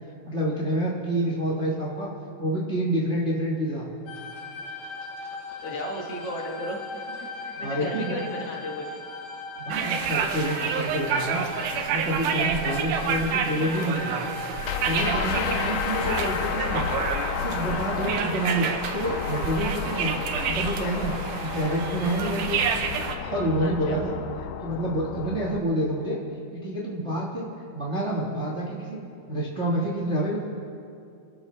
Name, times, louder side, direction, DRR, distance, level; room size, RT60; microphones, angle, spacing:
voice 1, 0.3-2.1 2.4-3.9 7.6-8.2 9.6-11.4 11.9-14.2 14.8-16.8 17.3-20.1 20.5-22.6 23.2-24.2 24.6-26.2 26.6-27.5 27.7-29.0 29.3-30.4, right 1 dB, 30° right, -4 dB, 1.4 m, -28 dB
sound 1, 4.1-16.4, left 3 dB, 70° left, 2.8 m, -38 dB
voice 2, 5.6-9.0 23.6-24.0, left 1 dB, 50° left, -1 dB, 2.5 m, -35 dB
sound 2, 9.7-23.2, right 6 dB, 80° right, 2.4 m, -29 dB
sound 3, 14.6-25.6, left 9 dB, 85° left, 1.5 m, -32 dB
28.0 x 12.5 x 3.3 m, 2.4 s
omnidirectional pair, 3.6 m